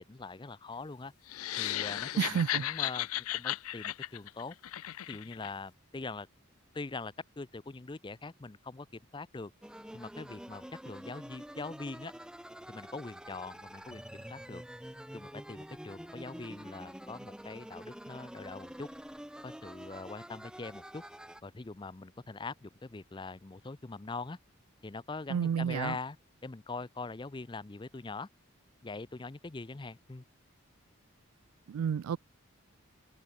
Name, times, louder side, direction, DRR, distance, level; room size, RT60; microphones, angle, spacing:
voice 1, 0.1-1.1 1.6-4.5 5.1-6.3 6.7-8.9 9.1-9.5 9.9-12.1 12.7-14.6 15.1-18.9 19.4-21.0 21.4-24.4 24.8-26.2 26.4-28.3 28.8-30.2, left 3 dB, 20° left, 0.5 m, -42 dB
sound 1, 1.3-5.5, left 13 dB, 90° left, 0.5 m, -35 dB
voice 2, 2.2-2.6 25.3-25.9 31.7-32.2, right 7 dB, 85° right, 0.3 m, -30 dB
sound 2, 9.6-21.4, equal, 5° right, 0.9 m, -47 dB
head